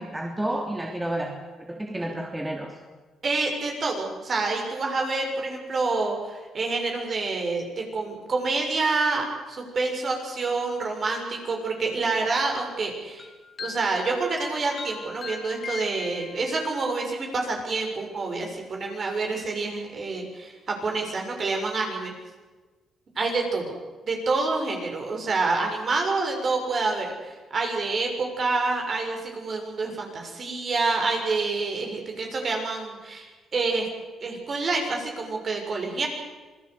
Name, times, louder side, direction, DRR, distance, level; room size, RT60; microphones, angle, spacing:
voice 1, 0.0-2.7, right 1 dB, 10° right, 1 dB, 3.1 m, -31 dB
voice 2, 3.2-13.3 13.6-22.1 23.2-23.7 24.0-33.9 34.2-36.1, right 3 dB, 45° right, 2 dB, 7.0 m, -27 dB
sound 1, 13.2-16.7, left 5 dB, 40° left, 2.4 m, -39 dB
26.0 x 18.0 x 8.3 m, 1.3 s
cardioid pair, 90°, 0 cm